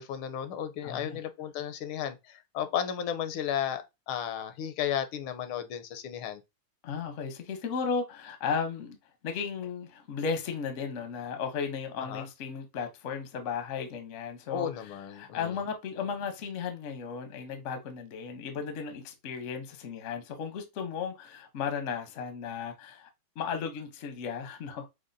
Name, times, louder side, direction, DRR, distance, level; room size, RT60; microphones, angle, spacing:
voice 1, 0.0-6.4 12.0-12.3 14.5-15.6, left 9 dB, 90° left, 1.5 m, -34 dB
voice 2, 0.8-1.2 6.8-9.0 9.2-23.1 23.4-24.9, left 6 dB, 60° left, 0.7 m, -35 dB
6.2 x 2.3 x 2.6 m
omnidirectional pair, 2.3 m